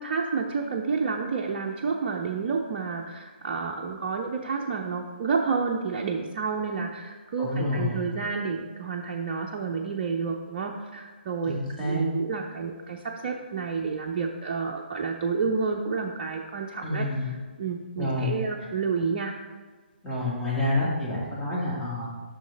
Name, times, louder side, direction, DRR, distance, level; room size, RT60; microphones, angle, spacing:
voice 1, 0.0-17.3 17.6-19.3, right 5 dB, 40° right, 1 dB, 0.5 m, -30 dB
voice 2, 7.4-8.0 11.5-12.0 16.8-17.3 18.0-18.3 20.0-22.1, left 1 dB, 10° left, -7 dB, 1.9 m, -28 dB
6.3 x 5.8 x 4.0 m, 1.4 s
figure-of-eight pair, 130°, 6 cm